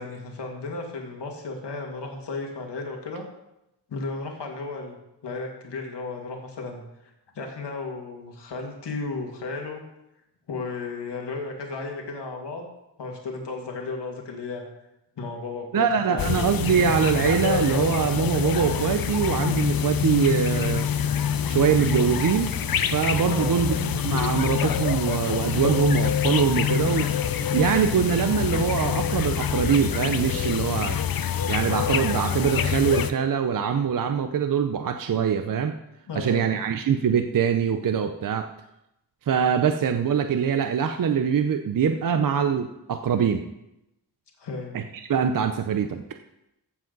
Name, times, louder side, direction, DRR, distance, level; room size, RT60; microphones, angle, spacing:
voice 1, 0.0-3.3 3.9-5.0 5.2-6.8 7.4-9.8 10.5-12.7 13.0-14.6 15.2-16.4 23.3-23.6 36.1-36.4 44.4-44.8, left 3 dB, 80° left, 1 dB, 2.1 m, -34 dB
voice 2, 15.7-20.9 21.5-22.5 22.9-27.1 27.5-31.0 31.5-35.7 36.1-38.5 39.3-43.5 44.7-46.0, right 7 dB, 50° right, 7 dB, 0.6 m, -23 dB
sound 1, 16.2-33.1, left 8 dB, 55° left, 0.6 m, -26 dB
15.0 x 7.7 x 4.0 m, 0.89 s
wide cardioid pair, 165°, 41 cm